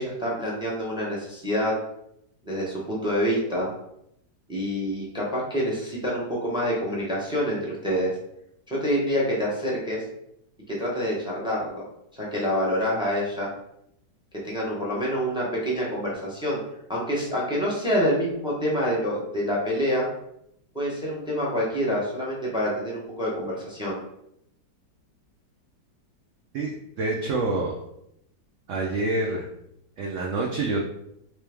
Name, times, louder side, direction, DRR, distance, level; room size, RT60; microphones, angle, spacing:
voice 1, 0.0-1.8 2.4-3.7 4.5-8.2 8.7-10.0 10.7-11.9 12.1-13.5 14.4-16.6 16.9-20.1 20.7-24.0, equal, 5° right, -4 dB, 0.6 m, -27 dB
voice 2, 26.5-27.8 28.7-29.5 30.0-30.8, right 2 dB, 75° right, -2 dB, 0.7 m, -27 dB
3.3 x 3.3 x 3.4 m, 0.78 s
omnidirectional pair, 1.9 m